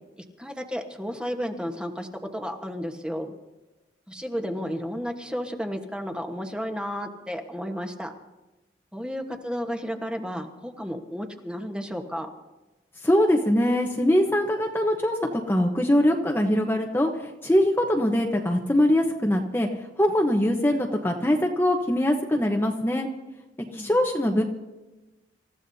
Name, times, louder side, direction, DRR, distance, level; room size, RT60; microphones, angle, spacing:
voice 1, 0.2-3.3 4.1-8.1 8.9-12.3 23.7-24.0, equal, 5° right, 4 dB, 1.3 m, -33 dB
voice 2, 13.0-15.2 15.5-17.1 17.4-19.7 20.0-23.1 23.7-24.4, left 1 dB, 15° left, 1 dB, 1.0 m, -22 dB
27.5 x 14.5 x 2.8 m, 1.1 s
head